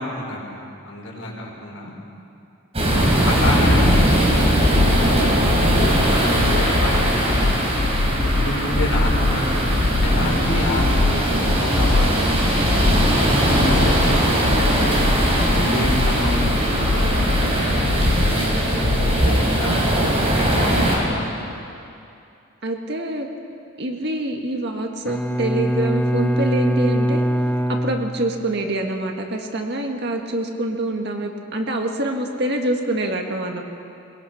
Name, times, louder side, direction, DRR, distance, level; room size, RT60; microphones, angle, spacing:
voice 1, 0.0-1.9 2.8-4.3 4.6-5.2 6.0-14.8 15.4-17.2 17.6-17.9 18.2-21.3, left 1 dB, 80° left, -2 dB, 5.1 m, -29 dB
sound 1, 2.7-21.0, right 1 dB, 30° right, 4.2 m, -20 dB
sound 2, 3.4-19.3, left 3 dB, 50° left, 0.6 m, -23 dB
voice 2, 3.4-3.7 22.6-23.3 23.8-27.2 27.7-33.6, right 1 dB, 50° right, 2 dB, 1.9 m, -26 dB
Bowed string instrument, 25.1-28.6, equal, 10° left, 0.6 m, -22 dB
21.5 x 21.0 x 6.0 m, 2.6 s
head